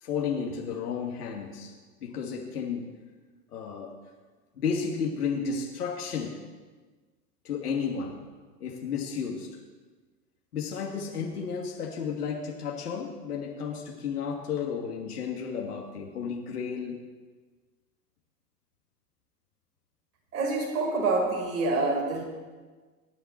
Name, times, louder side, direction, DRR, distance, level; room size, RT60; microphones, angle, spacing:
voice 1, 0.0-1.7 2.0-2.9 3.5-3.9 4.6-6.3 7.4-8.2 8.6-9.5 10.5-17.0, left 6 dB, 70° left, -1 dB, 2.8 m, -32 dB
voice 2, 20.3-22.2, right 3 dB, 70° right, -2 dB, 5.2 m, -26 dB
25.5 x 10.5 x 4.5 m, 1.4 s
figure-of-eight pair, 100°, 47 cm